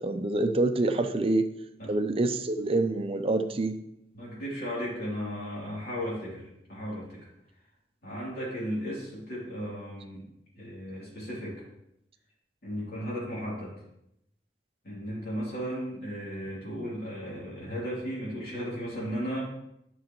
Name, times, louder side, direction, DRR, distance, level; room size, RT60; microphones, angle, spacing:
voice 1, 0.0-1.4 1.9-3.8, right 2 dB, 35° right, 8 dB, 0.5 m, -26 dB
voice 2, 4.1-7.3 8.0-10.3 10.5-11.6 12.6-13.7 14.8-19.5, equal, 55° left, -7 dB, 3.1 m, -35 dB
9.8 x 6.2 x 3.1 m, 0.81 s
head